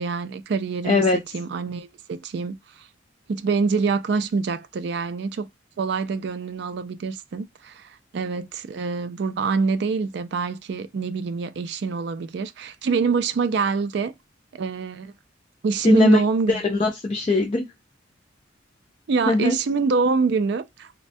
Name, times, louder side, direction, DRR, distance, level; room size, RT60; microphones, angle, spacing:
voice 1, 0.0-2.9 3.3-5.5 5.8-14.1 14.5-15.1 15.6-16.7 19.1-20.9, right 4 dB, 60° right, 0.3 m, -25 dB
voice 2, 0.8-1.2 15.8-16.2 16.5-17.6 19.3-19.6, left 2 dB, 30° left, 0.4 m, -20 dB
3.2 x 2.1 x 2.5 m
head